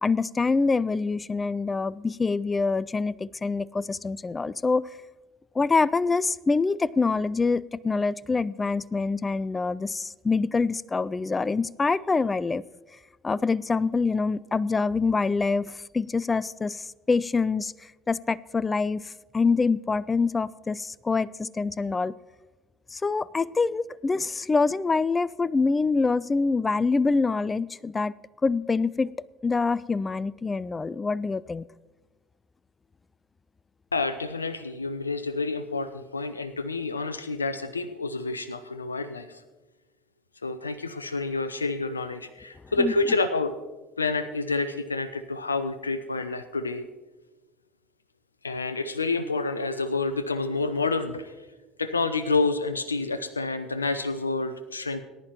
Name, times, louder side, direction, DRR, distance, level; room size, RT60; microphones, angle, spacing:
voice 1, 0.0-4.9 5.6-12.6 13.2-22.1 22.9-28.1 28.4-29.1 29.4-31.6 42.8-42.9, left 4 dB, 20° left, 0.3 m, -25 dB
voice 2, 33.9-39.4 40.4-43.5 44.0-46.9 48.4-51.4 51.8-55.0, left 3 dB, 85° left, 0.4 m, -28 dB
18.5 x 10.5 x 3.0 m
figure-of-eight pair, 65°, 0 cm